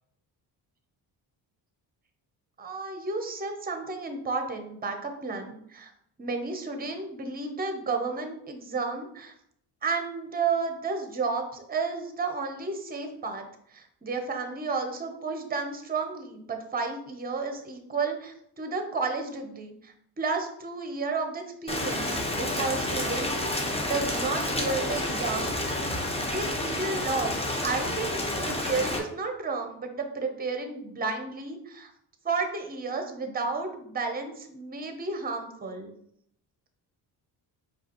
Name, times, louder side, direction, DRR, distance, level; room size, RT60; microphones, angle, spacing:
voice 1, 2.6-5.9 6.2-9.3 9.8-25.5 26.2-31.9 32.2-35.9, right 4 dB, 20° right, 5 dB, 0.7 m, -32 dB
Rain, 21.7-29.0, left 1 dB, 15° left, 0.8 m, -29 dB
4.8 x 2.4 x 2.9 m, 0.71 s
cardioid pair, 75°, 45 cm